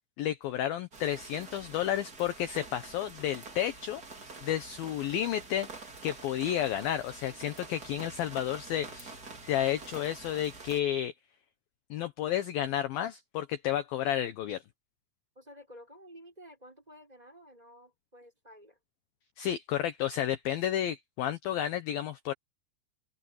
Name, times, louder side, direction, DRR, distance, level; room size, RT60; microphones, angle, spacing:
voice 1, 0.2-4.0 4.4-5.7 6.0-9.2 9.4-11.1 11.9-14.6 19.4-22.3, left 11 dB, 70° left, 2.4 m, -31 dB
sound 1, 0.9-10.8, right 3 dB, 25° right, 2.8 m, -47 dB
voice 2, 15.3-18.8, equal, 10° right, 5.8 m, -52 dB
open air
omnidirectional pair, 5.3 m